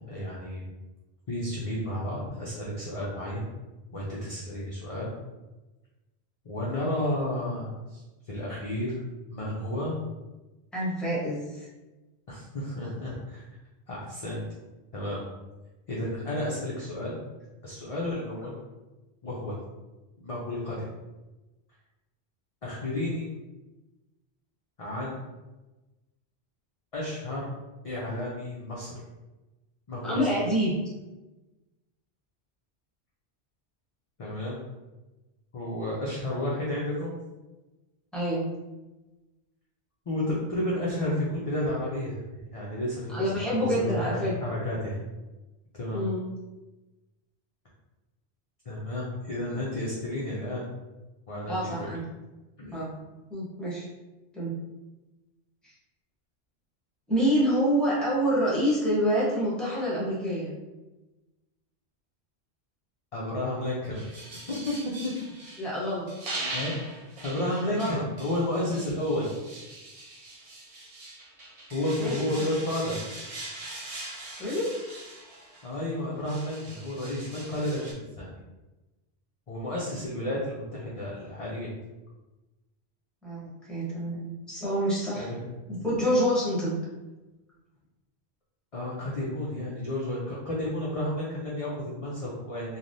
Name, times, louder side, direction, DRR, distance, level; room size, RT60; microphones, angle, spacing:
voice 1, 0.1-0.6 1.3-3.4 3.9-5.1 6.4-9.0 9.3-9.9 12.3-13.4 13.9-14.4 14.9-15.2 15.9-17.2 17.6-18.5 19.2-19.6 20.2-20.8 22.6-23.3 24.8-25.2 26.9-27.5 27.8-28.9 29.9-30.3 34.2-34.6 35.5-37.1 40.1-42.2 42.5-43.2 43.5-45.0 45.8-46.0 48.6-50.6 51.3-51.7 52.6-52.8 63.1-64.0 64.5-65.1 66.5-66.7 67.2-69.3 71.7-73.0 75.6-78.3 79.5-81.7 85.1-85.4 88.7-92.8, left 1 dB, 45° left, -6 dB, 0.5 m, -31 dB
voice 2, 10.7-11.7 30.0-30.8 38.1-38.5 43.1-44.3 45.9-46.3 51.5-52.1 52.7-52.9 53.3-53.9 54.3-54.6 57.1-60.5 65.6-66.1 67.8-68.0 72.0-72.4 74.4-74.7 83.2-85.3 85.7-86.8, equal, ahead, -7 dB, 0.8 m, -27 dB
sound 1, 63.9-65.7 66.1-75.8 76.2-77.9, right 2 dB, 40° right, 0.6 m, -41 dB
3.2 x 2.3 x 2.6 m, 1.1 s
omnidirectional pair, 1.1 m